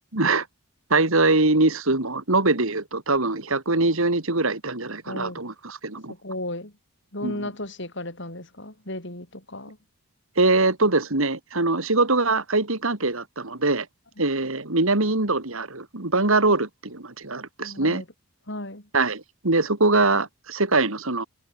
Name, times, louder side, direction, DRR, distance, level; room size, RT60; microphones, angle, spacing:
voice 1, 0.1-0.5 0.9-6.1 7.2-7.5 10.4-13.9 14.2-18.0 18.9-21.3, right 2 dB, 65° right, 2.6 m, -23 dB
voice 2, 5.0-5.4 6.2-6.7 7.1-9.8 17.6-18.0 18.5-18.9, left 1 dB, 55° left, 5.1 m, -35 dB
head